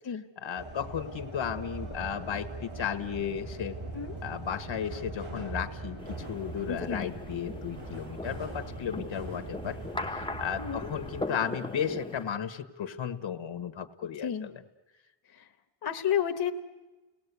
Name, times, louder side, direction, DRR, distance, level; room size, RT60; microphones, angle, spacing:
voice 1, 0.4-3.8 4.2-9.8 10.1-14.6, left 8 dB, 70° left, 10 dB, 1.4 m, -34 dB
sound 1, 0.6-11.2, right 2 dB, 85° right, 5.9 m, -41 dB
sound 2, 6.0-12.3, left 2 dB, 10° left, 0.9 m, -40 dB
voice 2, 6.7-7.1 10.6-10.9 14.2-14.5 15.3-15.5 15.8-16.5, left 9 dB, 50° left, 4 dB, 1.2 m, -31 dB
29.5 x 19.0 x 8.3 m, 1.2 s
wide cardioid pair, 160°, 47 cm